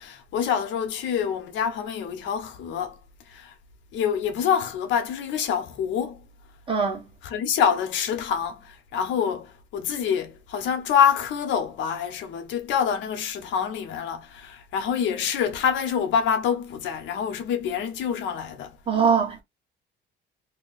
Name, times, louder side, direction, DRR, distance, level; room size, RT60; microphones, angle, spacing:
voice 1, 0.0-3.0 3.3-3.5 3.9-6.2 7.2-18.7, left 7 dB, 75° left, 1.0 m, -26 dB
voice 2, 6.7-7.0 18.9-19.4, right 6 dB, 30° right, 1.2 m, -22 dB
2.9 x 2.3 x 3.9 m
cardioid pair, 135°, 19 cm